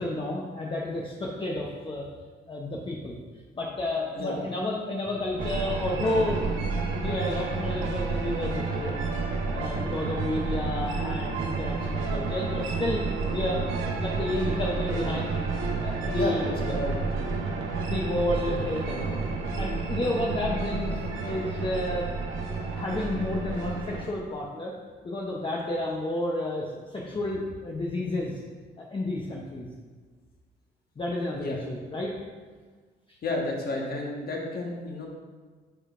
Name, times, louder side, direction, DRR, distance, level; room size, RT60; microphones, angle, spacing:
voice 1, 0.0-2.0 2.5-3.2 3.5-8.9 9.5-13.0 13.3-15.4 15.8-16.8 17.9-19.2 19.6-22.1 22.4-24.7 25.0-28.4 28.8-29.7 31.0-32.1 33.1-33.2, left 1 dB, 25° left, -3 dB, 0.8 m, -31 dB
sound 1, 5.4-24.0, right 4 dB, 85° right, 1.0 m, -30 dB
voice 2, 16.1-16.9 17.2-17.3 31.3-31.6 33.2-35.1, left 2 dB, 50° left, -1 dB, 1.5 m, -31 dB
8.6 x 5.1 x 2.5 m, 1.4 s
cardioid pair, 90°, 20 cm